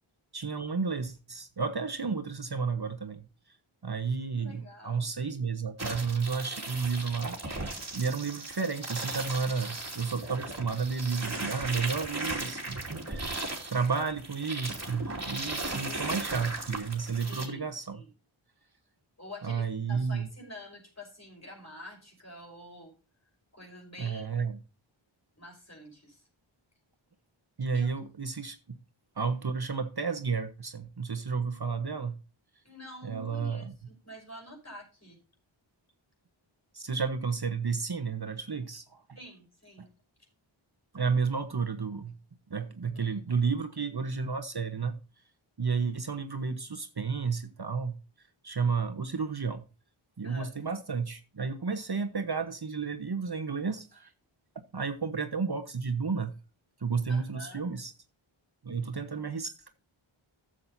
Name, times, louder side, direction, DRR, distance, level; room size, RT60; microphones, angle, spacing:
voice 1, 0.3-3.2 3.8-7.6 7.9-13.4 13.7-18.0 19.4-20.3 24.0-24.6 27.6-28.8 29.2-32.1 33.0-33.6 36.7-39.0 39.8-39.9 40.9-42.1 42.5-44.9 45.6-47.9 48.4-49.6 50.2-54.1 54.7-56.3 56.8-57.9 58.6-59.7, right 5 dB, 50° right, 1.1 m, -32 dB
voice 2, 4.4-5.1 15.4-16.2 17.0-17.6 17.9-18.1 19.2-22.9 23.5-24.3 25.4-26.2 27.7-27.9 32.6-35.2 39.2-39.9 42.9-43.2 50.2-50.6 57.1-57.6, left 1 dB, 30° left, 5.6 m, -48 dB
sound 1, 5.8-17.5, right 2 dB, 30° right, 2.8 m, -37 dB
14.0 x 7.5 x 2.7 m
wide cardioid pair, 50°, 49 cm